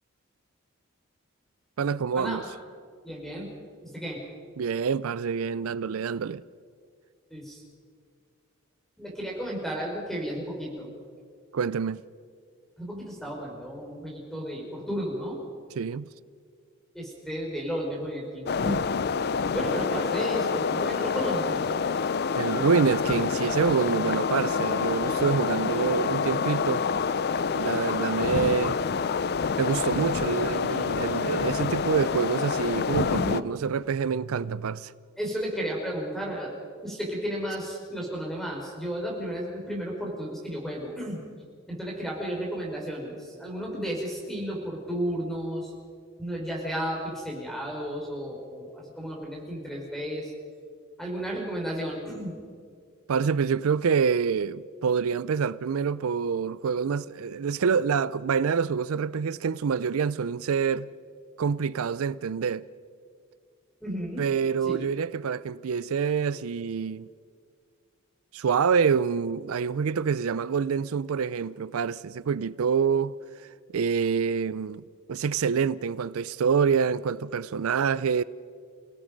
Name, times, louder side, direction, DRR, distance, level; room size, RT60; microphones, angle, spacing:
voice 1, 1.8-2.4 4.6-6.4 11.5-12.0 15.8-16.1 22.4-26.9 27.6-28.8 29.6-34.9 53.1-60.9 61.4-62.6 64.2-67.1 68.3-73.2 73.7-74.8 75.1-78.2, right 6 dB, 85° right, 0.4 m, -26 dB
voice 2, 3.0-3.5 3.9-4.2 7.3-7.6 9.0-10.9 12.8-15.4 16.9-18.8 19.5-21.5 33.1-33.4 35.2-36.5 36.8-41.2 41.7-45.7 46.2-50.3 51.0-52.3 63.8-64.3 64.6-64.8, equal, ahead, 5.2 m, -33 dB
sound 1, 18.5-33.4, left 5 dB, 50° left, 0.4 m, -27 dB
29.5 x 17.0 x 5.3 m
head